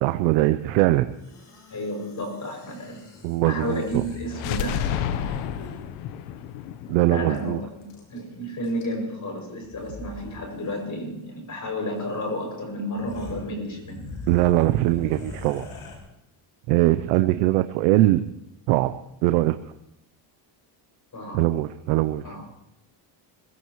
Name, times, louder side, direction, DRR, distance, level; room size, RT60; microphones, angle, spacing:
voice 1, 0.0-1.1 3.2-4.0 6.9-7.6 14.3-15.6 16.7-18.2 18.7-18.9 19.2-19.6 21.3-22.4, right 16 dB, 90° right, 9 dB, 0.8 m, -21 dB
sound 1, 1.1-5.9 7.3-7.4 7.6-8.2 8.6-9.1 9.6-10.4 10.6-10.8 12.0-12.1 12.5-12.6 12.9-16.0, left 3 dB, 70° left, 6.0 m, -42 dB
voice 2, 1.7-3.0 3.4-5.4 7.1-14.1 21.1-21.5 22.2-22.5, equal, 35° left, 2 dB, 6.6 m, -32 dB
sound 2, 4.3-8.2, left 9 dB, 85° left, 1.1 m, -31 dB
25.0 x 16.0 x 3.1 m, 0.82 s
supercardioid pair, 90°, 49 cm